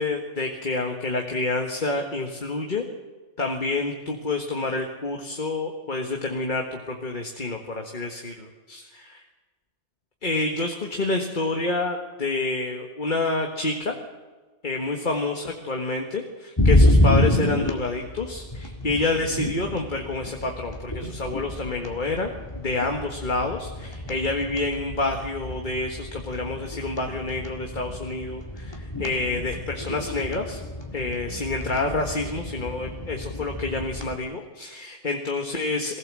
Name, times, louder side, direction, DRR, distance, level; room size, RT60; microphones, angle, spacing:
voice 1, 0.0-2.8 3.4-9.2 10.2-13.9 14.6-22.3 22.6-30.6 30.9-36.0, left 3 dB, 45° left, 2 dB, 1.7 m, -28 dB
sound 1, 16.6-34.1, left 1 dB, 20° left, 2.0 m, -27 dB
22.0 x 16.0 x 7.6 m, 1.3 s
omnidirectional pair, 1.2 m